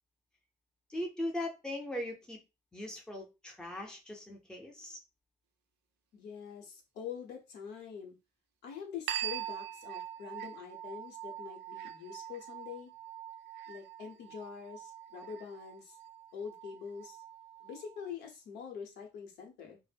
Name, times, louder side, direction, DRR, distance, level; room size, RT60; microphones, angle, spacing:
voice 1, 0.9-2.4 2.7-5.0, left 1 dB, 5° left, 1 dB, 0.6 m, -39 dB
voice 2, 6.1-8.2 8.6-12.9 13.7-16.0 16.3-17.2 17.6-19.8, left 7 dB, 80° left, 2 dB, 0.9 m, -45 dB
sound 1, 9.1-18.1, right 11 dB, 80° right, 0.4 m, -43 dB
2.1 x 2.0 x 3.3 m, 0.26 s
cardioid pair, 110°, 17 cm